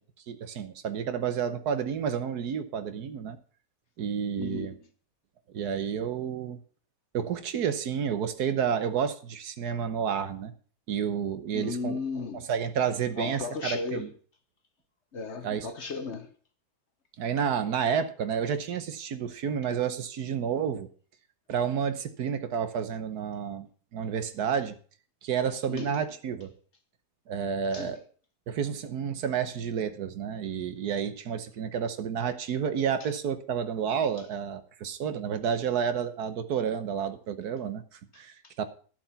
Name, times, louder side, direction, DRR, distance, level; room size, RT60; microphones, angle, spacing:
voice 1, 0.3-3.4 4.0-4.7 5.5-6.6 7.1-10.5 10.9-12.0 12.3-14.1 15.4-15.7 17.2-20.9 21.5-23.7 23.9-24.8 25.2-26.5 27.3-28.0 28.5-38.6, right 7 dB, 70° right, 1.4 m, -30 dB
voice 2, 4.4-4.8 11.5-12.5 13.2-14.1 15.1-16.3 25.7-25.9 27.7-27.9 38.1-38.5, left 4 dB, 50° left, 1.0 m, -35 dB
12.0 x 7.4 x 5.7 m
omnidirectional pair, 1.8 m